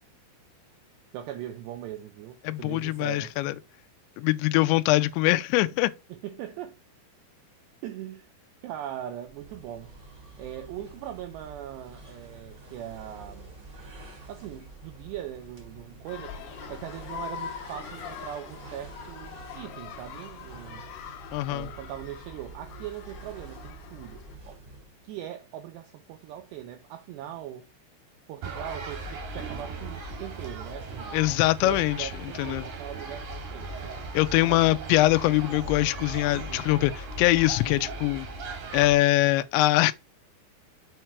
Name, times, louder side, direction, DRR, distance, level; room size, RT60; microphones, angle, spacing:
voice 1, 1.1-3.3 6.1-6.8 7.8-8.3 8.6-10.0 10.4-13.5 14.3-16.4 16.7-20.9 21.5-24.6 25.0-27.7 28.3-31.2 31.6-33.7 34.5-35.0 36.3-36.7 37.9-38.0, right 11 dB, 85° right, 2.4 m, -40 dB
voice 2, 2.5-3.6 4.2-5.9 21.3-21.7 31.1-32.7 34.1-38.3 38.7-39.9, left 17 dB, 90° left, 2.6 m, -23 dB
sound 1, 9.3-25.0, right 3 dB, 25° right, 2.3 m, -47 dB
sound 2, 16.1-24.4, left 8 dB, 70° left, 2.7 m, -43 dB
sound 3, 28.4-39.0, right 3 dB, 50° right, 2.7 m, -38 dB
6.5 x 5.8 x 3.1 m
omnidirectional pair, 5.7 m